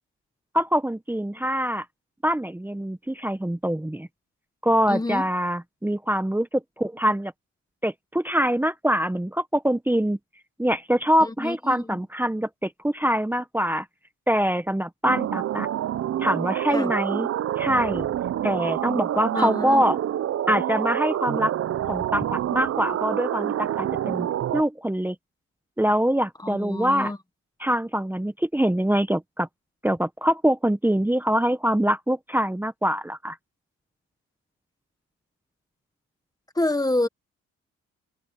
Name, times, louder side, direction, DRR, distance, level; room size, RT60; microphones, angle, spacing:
voice 1, 0.5-1.8 2.2-4.1 4.6-7.3 7.8-10.2 10.6-13.8 14.3-15.7 16.2-17.3 17.6-18.1 18.4-20.0 20.5-21.5 21.9-24.3 24.5-25.1 25.8-27.1 27.6-29.5 29.8-33.4, equal, 5° right, 1.2 m, -24 dB
voice 2, 4.9-5.2 11.2-12.0 16.7-16.9 19.3-19.8 26.4-27.2 36.5-37.1, left 2 dB, 10° left, 1.3 m, -27 dB
sound 1, 15.0-24.6, right 11 dB, 50° right, 0.6 m, -27 dB
cardioid pair, 90°, 30 cm